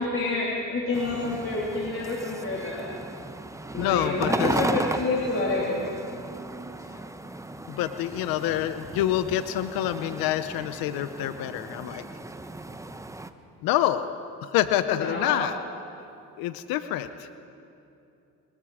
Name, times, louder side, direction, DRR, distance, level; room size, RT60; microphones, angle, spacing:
voice 1, 0.0-2.9 3.7-5.8 14.9-15.4, left 3 dB, 40° left, -3 dB, 3.4 m, -28 dB
sound 1, 0.9-13.3, right 2 dB, 10° right, 1.0 m, -35 dB
voice 2, 3.8-4.6 7.7-12.0 13.6-14.1 14.4-15.6 16.4-17.3, left 12 dB, 80° left, 12 dB, 0.8 m, -27 dB
28.5 x 20.5 x 5.0 m, 2.7 s
supercardioid pair, 85°, 35 cm